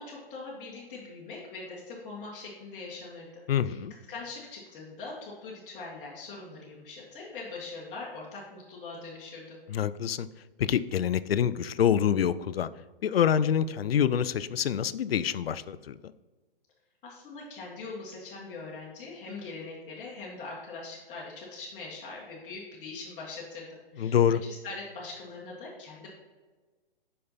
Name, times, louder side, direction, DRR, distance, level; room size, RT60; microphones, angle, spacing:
voice 1, 0.0-3.8 4.1-9.6 17.0-23.7 23.9-26.1, left 3 dB, 25° left, -6 dB, 1.3 m, -42 dB
voice 2, 3.5-3.9 9.7-10.3 10.6-12.7 13.0-16.1 24.0-24.4, left 9 dB, 85° left, 15 dB, 0.5 m, -26 dB
5.5 x 5.4 x 4.0 m, 1.3 s
hypercardioid pair, 130°, 29 cm